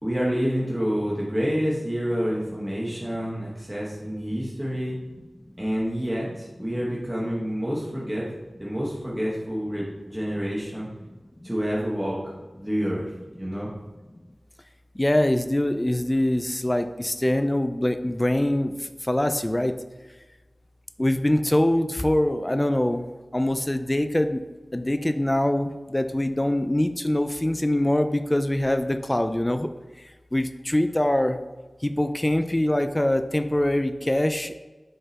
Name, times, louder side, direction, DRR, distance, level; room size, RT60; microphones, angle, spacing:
voice 1, 0.0-4.9 5.6-8.3 8.6-10.9 11.4-12.2 12.5-13.1 13.4-13.7, equal, 10° right, -6 dB, 1.3 m, -28 dB
voice 2, 15.0-19.7 21.0-23.0 23.3-24.4 24.7-29.7 30.3-31.4 31.8-34.5, left 1 dB, 20° left, 8 dB, 0.4 m, -23 dB
6.6 x 3.9 x 4.1 m, 1.2 s
wide cardioid pair, 65°, 0 cm